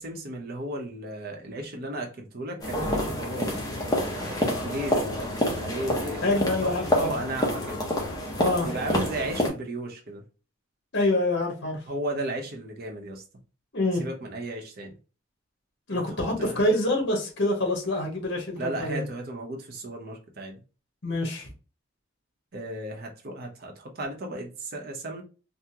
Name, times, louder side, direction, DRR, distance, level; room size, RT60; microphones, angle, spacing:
voice 1, 0.0-3.6 4.1-5.3 5.6-7.9 8.6-10.2 11.9-13.2 14.0-14.9 16.4-16.6 18.5-20.6 22.5-25.2, right 1 dB, 50° right, 1 dB, 0.7 m, -35 dB
sound 1, 2.6-9.5, left 1 dB, 20° left, 0.7 m, -28 dB
voice 2, 6.2-7.1 8.4-8.7 10.9-11.8 13.7-14.1 15.9-19.0 21.0-21.5, left 1 dB, 60° left, 1 dB, 1.1 m, -26 dB
3.5 x 2.1 x 2.8 m, 0.35 s
head